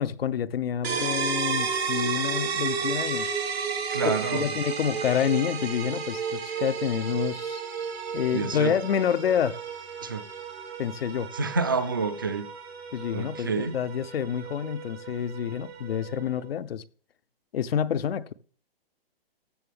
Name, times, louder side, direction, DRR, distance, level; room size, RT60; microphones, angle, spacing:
voice 1, 0.0-3.3 4.0-7.6 8.1-9.6 10.8-11.3 12.9-16.8 17.5-18.3, left 8 dB, 75° left, 0.6 m, -28 dB
sound 1, 0.8-16.4, right 6 dB, 85° right, 2.1 m, -33 dB
voice 2, 3.9-4.4 8.3-8.7 10.0-10.2 11.3-12.4 13.1-13.7, right 4 dB, 25° right, 0.3 m, -28 dB
14.0 x 6.1 x 3.5 m
hypercardioid pair, 165°, 30 cm